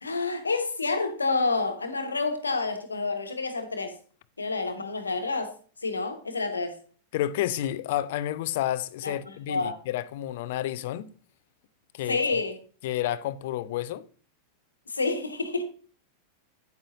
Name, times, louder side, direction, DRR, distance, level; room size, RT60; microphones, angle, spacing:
voice 1, 0.0-3.9 4.4-5.5 5.8-6.8 9.0-9.1 9.5-9.8 12.1-12.6 14.9-15.6, left 3 dB, 75° left, 1.3 m, -28 dB
voice 2, 7.1-11.1 11.9-12.2 12.8-14.1, left 13 dB, 55° left, 0.5 m, -30 dB
9.5 x 8.8 x 2.7 m
figure-of-eight pair, 90°, 0 cm